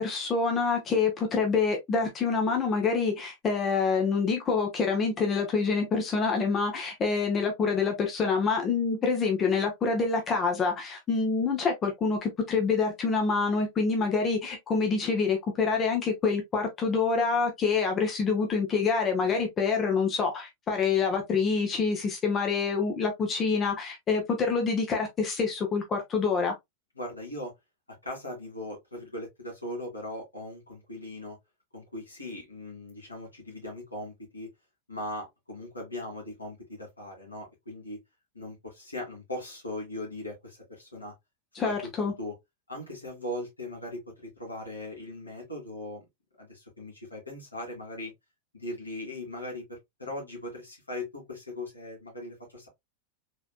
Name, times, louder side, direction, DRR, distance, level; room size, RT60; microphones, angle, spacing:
voice 1, 0.0-26.5 41.5-42.1, left 4 dB, 25° left, 1.1 m, -26 dB
voice 2, 27.0-27.5 28.0-31.4 31.7-34.5 34.9-38.0 38.3-41.1 41.6-41.7 42.2-42.3 42.7-46.0 46.4-48.1 48.5-52.7, left 1 dB, 80° left, 2.5 m, -39 dB
4.2 x 3.5 x 2.3 m
figure-of-eight pair, 90°, 0 cm